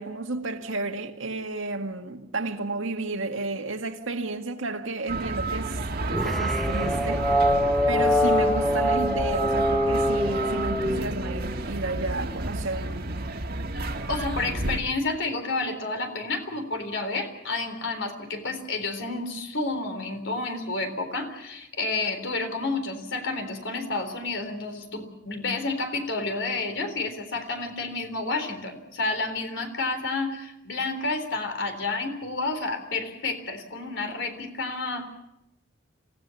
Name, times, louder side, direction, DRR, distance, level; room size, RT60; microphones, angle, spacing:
voice 1, 0.0-5.7 6.1-7.3 7.9-12.9, right 3 dB, 85° right, 2.0 m, -32 dB
sound 1, 5.1-14.8, right 2 dB, 50° right, 1.7 m, -31 dB
sound 2, 6.1-11.6, equal, ahead, 0.8 m, -24 dB
voice 2, 14.1-35.1, left 3 dB, 65° left, 3.8 m, -30 dB
27.0 x 17.0 x 7.2 m
head